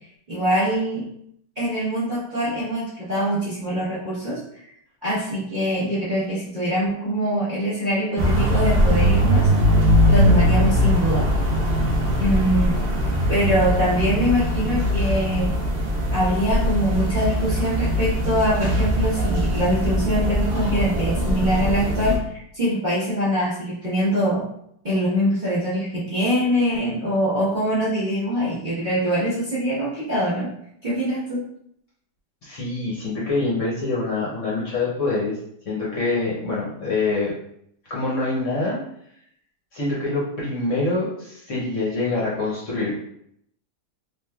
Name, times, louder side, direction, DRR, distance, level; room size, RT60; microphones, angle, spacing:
voice 1, 0.3-1.1 1.6-4.4 5.0-9.5 10.1-11.3 12.2-12.8 13.3-15.6 16.1-22.2 22.5-24.5 24.8-30.5 30.8-31.4, equal, 35° right, -10 dB, 0.8 m, -23 dB
sound 1, 8.2-22.2, equal, 70° right, 0.5 m, -21 dB
voice 2, 32.4-35.4 35.7-37.3 37.9-38.8 39.7-43.0, left 3 dB, 55° left, -6 dB, 0.9 m, -25 dB
3.4 x 2.9 x 2.2 m, 0.72 s
omnidirectional pair, 1.8 m